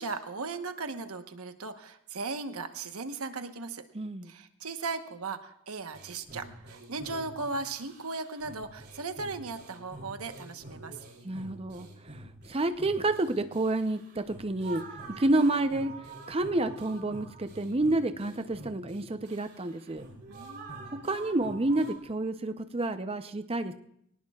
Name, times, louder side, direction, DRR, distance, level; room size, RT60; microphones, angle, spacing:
voice 1, 0.0-3.8 4.3-11.0 20.3-20.7, right 3 dB, 80° right, 8 dB, 1.1 m, -37 dB
voice 2, 3.9-4.3 11.2-11.9 12.1-14.8 15.2-15.9 16.3-20.1 21.0-23.7, right 2 dB, 25° right, 9 dB, 0.6 m, -29 dB
sound 1, 5.9-21.9, right 2 dB, 50° right, 3.1 m, -47 dB
22.5 x 18.0 x 2.4 m, 0.74 s
head